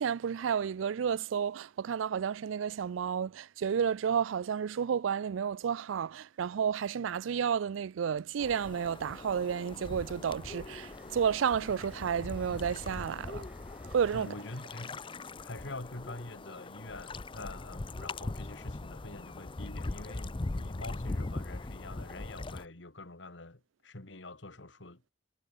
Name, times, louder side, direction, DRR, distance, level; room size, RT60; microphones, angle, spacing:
voice 1, 0.0-13.4 13.9-14.3, right 7 dB, 90° right, 0.4 m, -31 dB
sound 1, 8.4-22.7, left 2 dB, 25° left, 0.6 m, -41 dB
Train, 9.3-17.6 19.2-19.4, right 1 dB, 5° right, 4.8 m, -62 dB
voice 2, 14.1-15.1 15.4-25.1, left 2 dB, 70° left, 2.1 m, -45 dB
head